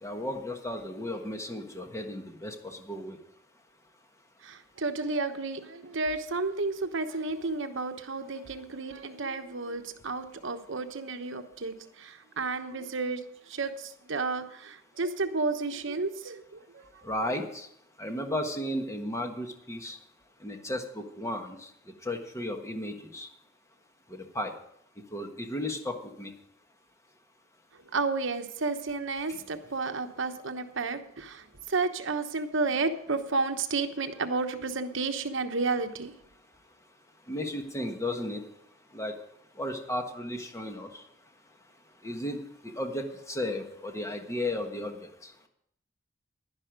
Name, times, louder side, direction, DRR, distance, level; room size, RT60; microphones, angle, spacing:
voice 1, 0.0-3.2 17.0-17.7 18.0-20.0 20.4-21.7 22.0-23.3 24.1-24.5 25.1-26.3 29.3-29.4 37.3-38.4 38.9-39.1 39.6-41.0 42.0-42.4 42.6-45.0 45.2-45.3, left 1 dB, 15° left, 4 dB, 1.4 m, -34 dB
voice 2, 4.4-13.2 13.5-16.4 16.7-16.9 27.9-36.1, right 3 dB, 65° right, 8 dB, 1.1 m, -32 dB
11.0 x 10.5 x 5.2 m, 0.73 s
head